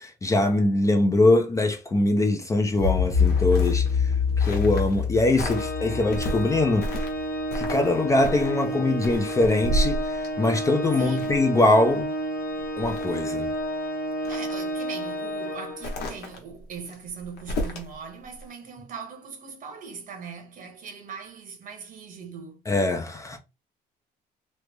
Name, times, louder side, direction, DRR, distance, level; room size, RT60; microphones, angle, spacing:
voice 1, 0.0-4.1 4.4-6.9 7.5-12.1 12.8-13.5 22.7-23.4, left 2 dB, 20° left, 0.5 m, -22 dB
sound 1, 2.8-7.6, left 6 dB, 90° right, 1.4 m, -25 dB
sound 2, 3.0-5.0 5.3-5.7 6.1-7.2 7.5-7.9 8.2-11.5 12.0-12.1 12.5-13.6 14.1-14.6 15.8-17.9 18.4-18.5, equal, 75° left, 1.0 m, -32 dB
Organ, 5.4-16.2, right 1 dB, 60° left, 1.2 m, -31 dB
voice 2, 11.0-11.5 14.3-22.6, right 6 dB, 55° right, 1.1 m, -40 dB
3.2 x 2.0 x 3.3 m
cardioid pair, 110°, 17 cm